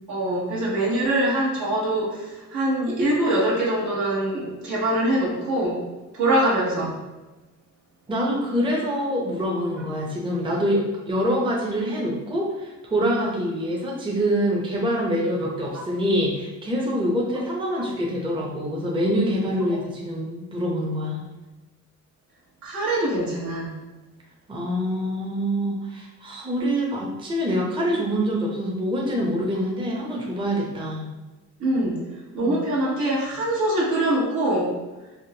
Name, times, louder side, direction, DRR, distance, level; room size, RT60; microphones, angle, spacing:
voice 1, 0.1-5.9 6.1-6.9 22.6-23.7 31.6-32.0 32.3-34.8, right 1 dB, 70° right, -6 dB, 1.1 m, -23 dB
voice 2, 8.1-21.2 24.5-31.1 32.4-32.6, equal, 15° right, -3 dB, 0.6 m, -25 dB
3.4 x 2.1 x 2.7 m, 1.1 s
cardioid pair, 90°, 30 cm